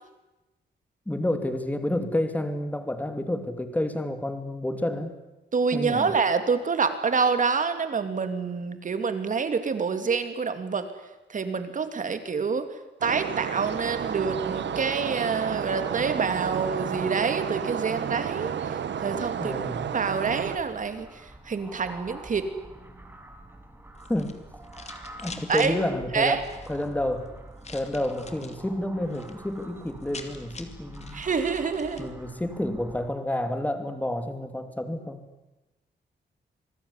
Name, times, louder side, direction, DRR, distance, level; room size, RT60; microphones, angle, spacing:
voice 1, 1.1-5.2 5.7-6.1 19.4-19.8 24.1-24.4 25.2-27.3 27.7-31.3 32.0-35.2, left 1 dB, 10° left, 8 dB, 2.7 m, -29 dB
voice 2, 5.5-10.9 11.3-12.7 13.0-18.5 19.0-19.6 19.9-21.2 21.5-22.5 25.5-25.7 26.1-26.4 31.1-32.1, right 5 dB, 45° right, 9 dB, 2.8 m, -27 dB
sound 1, 13.0-20.6, right 8 dB, 80° right, 1.7 m, -31 dB
sound 2, 20.3-33.1, right 1 dB, 10° right, 3.6 m, -46 dB
sound 3, 23.9-25.7 26.3-26.9 27.6-28.6 29.0-29.4 29.6-29.7 29.9-32.1, left 4 dB, 40° left, 2.7 m, -45 dB
27.0 x 20.0 x 9.8 m, 1.0 s
wide cardioid pair, 140°, 18 cm